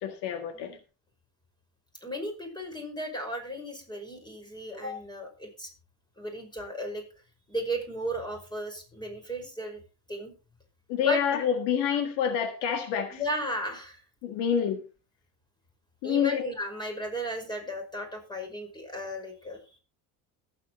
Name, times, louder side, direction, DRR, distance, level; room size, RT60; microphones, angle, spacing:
voice 1, 0.0-0.8 10.9-13.2 14.2-14.8 16.0-16.4, left 8 dB, 80° left, 7 dB, 1.7 m, -27 dB
voice 2, 2.0-5.7 6.2-7.0 7.5-9.8 10.1-10.3 11.0-11.2 13.1-14.0 16.0-19.6, equal, 10° left, 3 dB, 5.2 m, -35 dB
21.0 x 8.6 x 3.0 m, 0.33 s
supercardioid pair, 100°, 41 cm